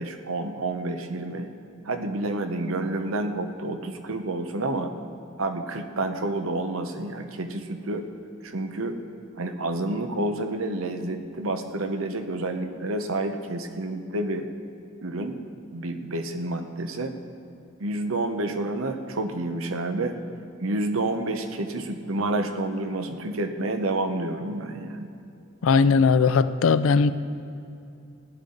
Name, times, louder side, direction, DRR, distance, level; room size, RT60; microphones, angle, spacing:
voice 1, 0.0-1.5 1.8-4.9 5.4-8.1 8.4-9.0 9.4-14.5 15.0-15.4 15.7-17.1 17.8-20.2 20.6-25.1, right 2 dB, 85° right, 7 dB, 0.9 m, -29 dB
voice 2, 25.6-27.1, left 5 dB, 75° left, 14 dB, 0.4 m, -19 dB
16.5 x 10.5 x 3.9 m, 2.6 s
head